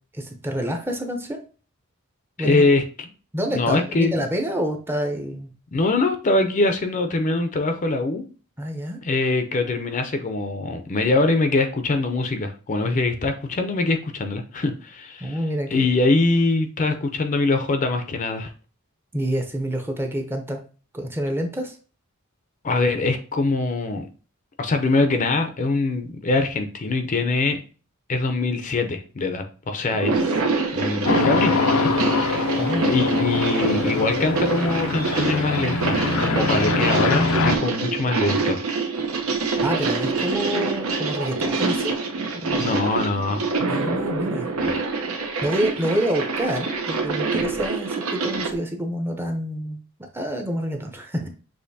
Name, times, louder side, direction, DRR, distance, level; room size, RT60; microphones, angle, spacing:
voice 1, 0.1-1.4 2.4-2.6 3.3-5.5 8.6-9.0 15.2-15.9 19.1-20.6 20.9-21.7 32.6-32.8 39.6-42.0 42.4-42.7 43.7-44.5 45.4-49.8 50.1-51.3, equal, 10° right, 3 dB, 0.6 m, -27 dB
voice 2, 2.4-2.8 3.5-4.3 5.7-8.2 9.0-15.4 15.7-18.5 22.6-24.1 24.6-27.6 28.1-30.4 30.7-32.5 32.8-38.7 42.6-43.5 44.6-44.8, left 3 dB, 35° left, 7 dB, 0.5 m, -23 dB
sound 1, 29.9-48.5, right 3 dB, 85° right, 0.8 m, -26 dB
sound 2, 31.0-37.6, left 3 dB, 85° left, 0.6 m, -23 dB
6.4 x 3.0 x 2.7 m, 0.37 s
head